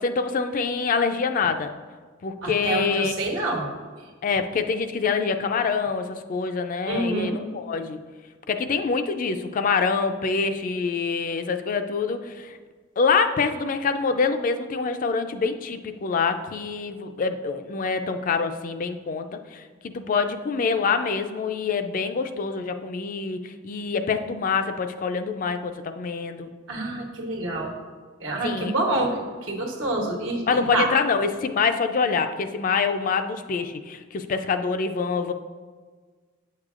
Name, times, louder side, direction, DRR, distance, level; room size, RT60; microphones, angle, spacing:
voice 1, 0.0-1.7 2.2-3.1 4.2-8.0 8.5-12.6 13.0-26.5 28.4-28.7 30.5-35.3, left 5 dB, 45° left, 8 dB, 0.3 m, -25 dB
voice 2, 2.4-3.7 6.9-7.4 26.7-27.7 28.2-30.9, right 2 dB, 80° right, 0 dB, 1.2 m, -27 dB
8.3 x 6.4 x 2.5 m, 1.5 s
head